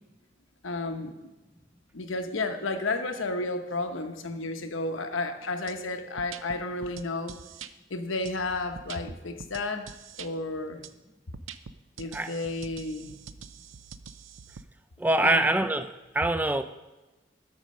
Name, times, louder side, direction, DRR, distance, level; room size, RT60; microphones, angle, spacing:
voice 1, 0.6-1.3 1.9-7.4 7.9-9.9 10.2-10.9 12.0-13.2 15.2-15.5, left 2 dB, 85° left, 7 dB, 0.9 m, -32 dB
sound 1, 5.7-5.8 6.2-7.7 8.3-10.3 10.8-10.9 11.3-14.6, right 7 dB, 85° right, 0.5 m, -45 dB
voice 2, 15.0-15.9 16.1-16.6, right 2 dB, 10° right, 10 dB, 0.4 m, -24 dB
12.0 x 5.2 x 6.4 m, 1.1 s
head